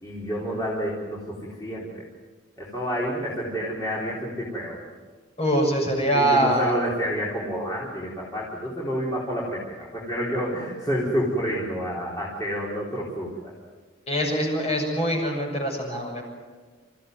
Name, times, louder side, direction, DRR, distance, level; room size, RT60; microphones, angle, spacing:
voice 1, 0.0-2.0 2.6-4.8 6.1-13.5, equal, 15° left, -6 dB, 4.2 m, -29 dB
voice 2, 5.4-6.8 14.1-16.2, right 1 dB, 30° left, 1 dB, 6.6 m, -23 dB
28.5 x 15.5 x 9.5 m, 1.4 s
head